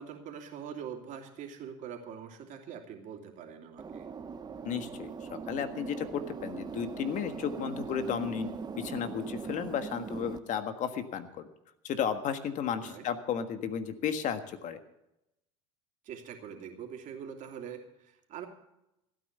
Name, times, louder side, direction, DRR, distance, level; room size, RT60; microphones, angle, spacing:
voice 1, 0.0-4.0 12.7-13.0 16.0-18.5, right 8 dB, 50° right, 3 dB, 3.0 m, -43 dB
sound 1, 3.8-10.4, right 5 dB, 25° right, 1.0 m, -40 dB
voice 2, 4.6-8.5 8.8-11.5 11.8-14.8, left 8 dB, 50° left, 9 dB, 1.6 m, -33 dB
15.5 x 9.2 x 6.7 m, 0.88 s
supercardioid pair, 95°, 16 cm